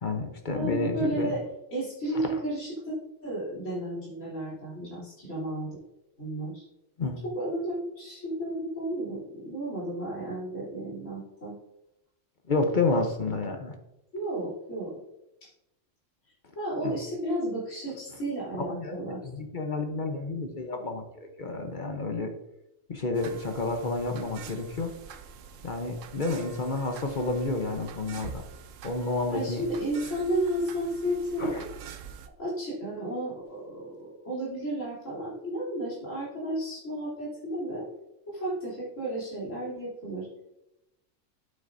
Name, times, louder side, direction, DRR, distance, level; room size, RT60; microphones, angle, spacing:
voice 1, 0.0-1.3 2.1-2.4 7.0-7.2 12.5-13.7 16.8-17.0 18.1-18.2 18.5-22.3 22.9-24.9 25.6-28.4 28.8-29.6 31.4-31.6, left 3 dB, 40° left, 5 dB, 0.9 m, -30 dB
voice 2, 0.5-1.5 1.7-2.9 3.2-5.8 6.2-6.6 7.2-11.5 14.1-14.9 15.4-15.5 16.6-19.2 29.3-31.6 32.4-37.9 38.3-40.3, right 1 dB, 75° left, -8 dB, 3.6 m, -33 dB
sound 1, 23.1-32.3, right 7 dB, 80° right, 1.0 m, -46 dB
8.6 x 7.8 x 2.6 m, 0.88 s
omnidirectional pair, 1.3 m